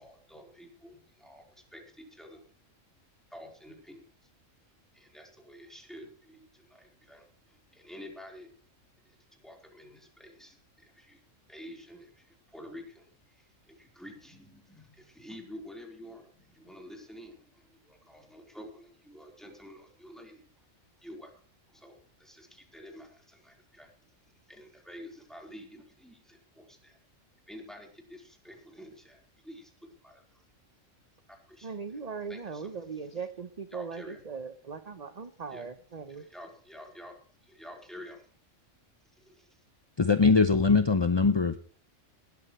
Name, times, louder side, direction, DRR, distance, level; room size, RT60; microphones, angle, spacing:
voice 1, 0.0-2.4 3.3-4.0 4.9-8.5 9.4-11.2 11.5-13.1 13.4-20.5 21.0-21.3 21.7-23.9 24.5-27.0 27.5-29.7 30.0-30.4 31.3-31.7 32.3-32.9 33.1-33.2 33.7-34.2 35.5-35.7 36.2-37.1 37.4-38.3 39.2-39.5, equal, ahead, 1 dB, 4.2 m, -49 dB
voice 2, 31.6-36.2, right 5 dB, 35° right, 10 dB, 0.9 m, -39 dB
voice 3, 40.0-41.6, left 4 dB, 30° left, 11 dB, 0.5 m, -22 dB
19.5 x 13.0 x 3.2 m, 0.43 s
omnidirectional pair, 1.3 m